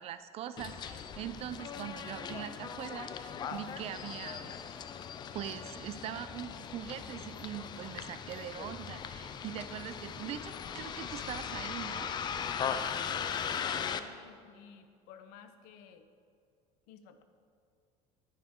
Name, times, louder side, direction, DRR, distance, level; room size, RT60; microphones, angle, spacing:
voice 1, 0.0-4.7 5.3-12.1, right 10 dB, 40° right, 12 dB, 0.4 m, -42 dB
Bus, 0.6-14.0, left 7 dB, 25° left, 0.4 m, -39 dB
voice 2, 13.1-16.0 16.9-17.2, left 7 dB, 70° left, 9 dB, 0.9 m, -51 dB
10.5 x 10.0 x 3.7 m, 2.3 s
cardioid pair, 155°, 16 cm